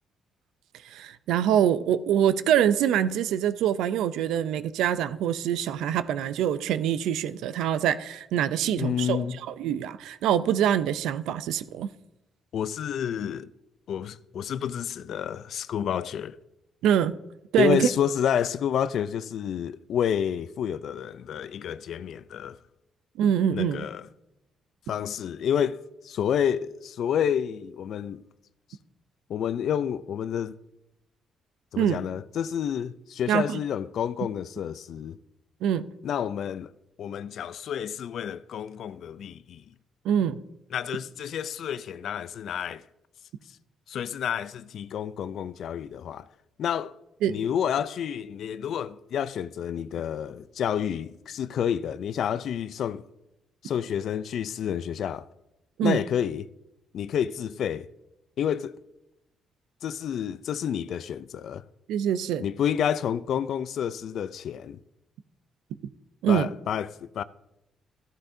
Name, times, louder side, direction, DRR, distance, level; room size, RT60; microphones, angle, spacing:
voice 1, 0.9-9.2 9.6-11.9 16.8-17.1 17.5-17.9 23.2-23.9 31.8-32.0 33.3-33.6 35.6-35.9 40.0-40.4 47.2-47.4 55.8-56.0 61.9-62.4 66.2-66.5, right 9 dB, 85° right, 0.5 m, -24 dB
voice 2, 8.8-9.4 12.5-13.5 13.9-16.4 17.6-22.6 23.5-24.1 24.9-28.2 29.3-30.6 31.7-35.2 36.0-36.7 37.0-39.6 40.7-42.8 43.9-46.3 46.6-46.9 47.3-53.0 53.6-55.3 55.8-56.5 56.9-57.9 58.4-58.8 59.8-61.6 62.4-64.8 66.3-67.2, left 9 dB, 70° left, 0.4 m, -29 dB
14.5 x 12.0 x 2.7 m
cardioid pair, 90°, 0 cm